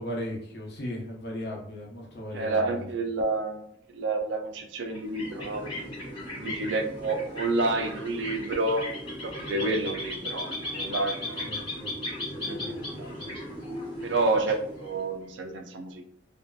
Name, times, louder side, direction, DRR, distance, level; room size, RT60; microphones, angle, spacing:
voice 1, 0.0-2.9 6.3-6.5 11.2-11.9 12.2-13.3 14.0-14.1, left 1 dB, 60° left, -1 dB, 0.7 m, -38 dB
voice 2, 2.3-3.6 3.9-5.7 6.1-8.8 9.2-11.6 12.4-12.6 13.0-13.3 14.0-16.0, right 2 dB, 70° right, 5 dB, 0.4 m, -29 dB
sound 1, 4.8-15.2, left 1 dB, 25° left, 0.9 m, -37 dB
2.7 x 2.3 x 2.2 m, 0.67 s
head